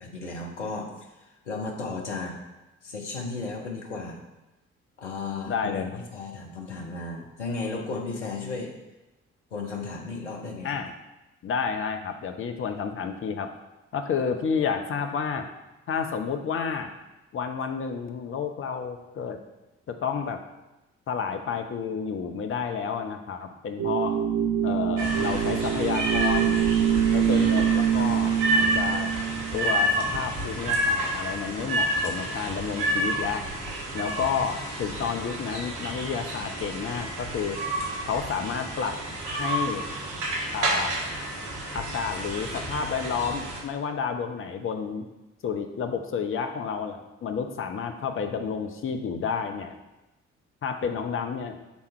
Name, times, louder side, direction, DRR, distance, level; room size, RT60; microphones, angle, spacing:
voice 1, 0.0-0.9 1.5-2.4 2.8-4.2 5.0-8.7 9.5-10.8, left 3 dB, 80° left, 0 dB, 0.8 m, -34 dB
voice 2, 5.5-6.0 10.6-10.9 11.4-13.5 13.9-15.5 15.9-16.9 17.3-19.4 19.9-20.4 21.1-24.2 24.6-26.7 27.1-29.2 29.5-33.4 33.9-37.6 38.1-38.9 39.4-39.9 40.5-41.1 41.7-45.1 45.4-49.8 50.6-51.6, left 6 dB, 35° left, 5 dB, 0.7 m, -30 dB
sound 1, 23.8-29.9, right 9 dB, 45° right, 0.7 m, -24 dB
sound 2, 25.0-43.6, right 1 dB, 60° right, 1.2 m, -30 dB
6.1 x 3.7 x 4.3 m, 1.0 s
figure-of-eight pair, 40°, 35 cm